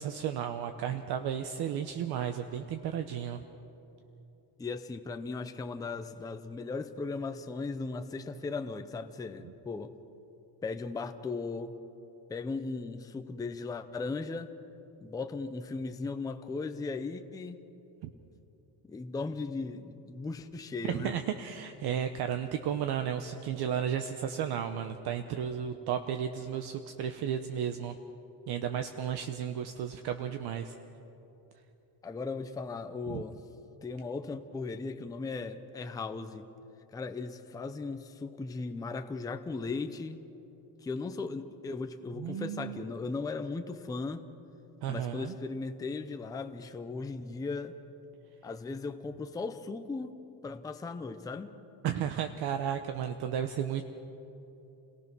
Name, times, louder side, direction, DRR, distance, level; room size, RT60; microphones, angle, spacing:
voice 1, 0.0-3.4 18.0-18.1 20.9-27.9 28.5-30.7 33.1-33.2 42.2-42.8 44.8-45.3 51.8-53.8, right 9 dB, 60° right, 7 dB, 1.0 m, -33 dB
voice 2, 4.6-9.9 10.6-11.8 12.3-14.5 15.0-17.6 18.9-21.2 32.0-33.4 33.8-36.5 36.9-40.2 40.8-44.2 44.9-47.8 48.4-50.1 50.4-51.5, left 3 dB, 10° left, 7 dB, 0.5 m, -37 dB
28.5 x 18.5 x 6.0 m, 3.0 s
cardioid pair, 175°, 44 cm